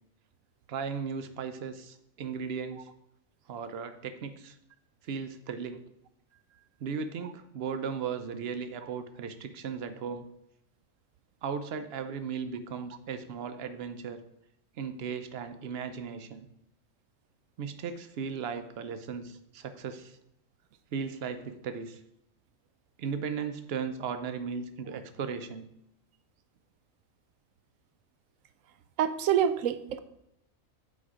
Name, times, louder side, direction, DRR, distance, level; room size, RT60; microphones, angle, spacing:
voice 1, 0.7-2.9 3.5-4.5 5.0-5.8 6.8-10.3 11.4-14.2 14.8-16.5 17.6-20.2 20.9-22.0 23.0-25.7, right 6 dB, 55° right, 9 dB, 0.8 m, -36 dB
voice 2, 29.0-30.0, right 9 dB, 80° right, 11 dB, 1.0 m, -26 dB
8.6 x 4.4 x 4.9 m, 0.81 s
omnidirectional pair, 1.4 m